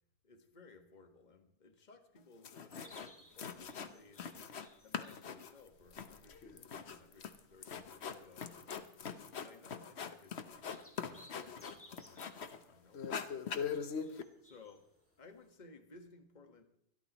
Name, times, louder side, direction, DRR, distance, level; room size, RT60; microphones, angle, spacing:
voice 1, 0.2-4.3 4.8-9.0 9.3-13.3 14.4-14.8 15.2-16.6, left 3 dB, 30° left, 6 dB, 1.5 m, -60 dB
sound 1, 2.2-2.3 2.4-3.1 3.4-4.7 4.9-12.6 12.9-14.2, left 6 dB, 50° left, 1.1 m, -42 dB
sound 2, 2.7-15.5, equal, 10° left, 2.1 m, -65 dB
24.0 x 13.0 x 3.0 m, 0.71 s
omnidirectional pair, 1.7 m